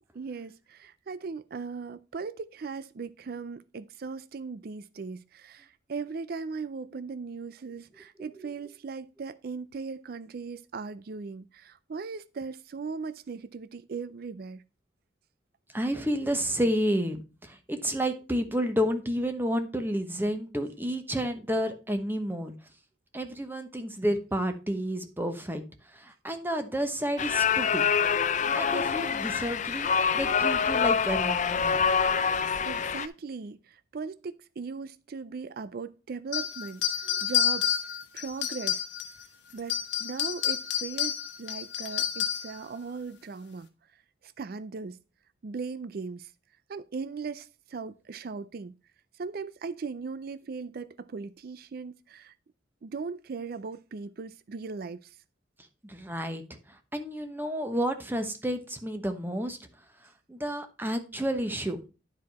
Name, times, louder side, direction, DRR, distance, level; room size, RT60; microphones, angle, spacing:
voice 1, 0.1-14.6 32.6-36.8 37.2-37.8 38.1-38.8 39.5-43.7 44.2-45.0 45.4-46.3 46.7-48.7 49.2-52.3 52.8-55.1, right 4 dB, 50° right, 0.4 m, -38 dB
voice 2, 15.7-22.5 23.1-27.8 28.2-31.9 37.1-37.2 55.8-59.6 60.3-61.8, equal, 10° right, 1.0 m, -31 dB
sound 1, 27.2-33.1, left 6 dB, 40° left, 0.5 m, -26 dB
sound 2, 36.3-39.2 39.6-42.6, left 9 dB, 65° left, 1.2 m, -29 dB
10.5 x 4.8 x 4.1 m
head